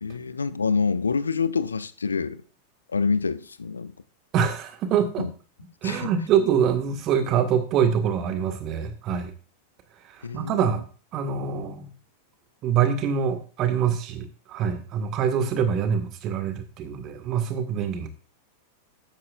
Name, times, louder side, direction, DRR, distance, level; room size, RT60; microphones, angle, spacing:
voice 1, 0.0-2.4 2.9-3.9 5.2-5.3 5.8-6.1 9.1-9.2 10.2-10.6, left 5 dB, 75° left, 0.6 m, -26 dB
voice 2, 4.3-5.3 5.8-9.3 10.0-10.8 11.1-11.9 12.6-18.1, right 8 dB, 35° right, 1.7 m, -25 dB
13.5 x 9.6 x 2.5 m
figure-of-eight pair, 90°, 0 cm